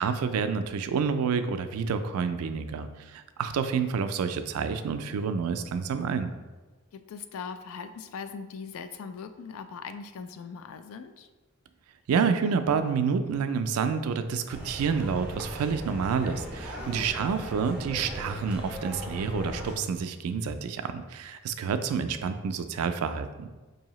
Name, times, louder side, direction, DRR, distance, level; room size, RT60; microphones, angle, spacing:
voice 1, 0.0-6.3 12.1-23.5, right 6 dB, 85° right, 9 dB, 0.3 m, -28 dB
voice 2, 6.9-11.3 16.8-17.1, left 5 dB, 75° left, 9 dB, 0.3 m, -40 dB
sound 1, 14.5-19.8, equal, 5° right, 0.5 m, -38 dB
4.6 x 2.7 x 3.0 m, 1.3 s
head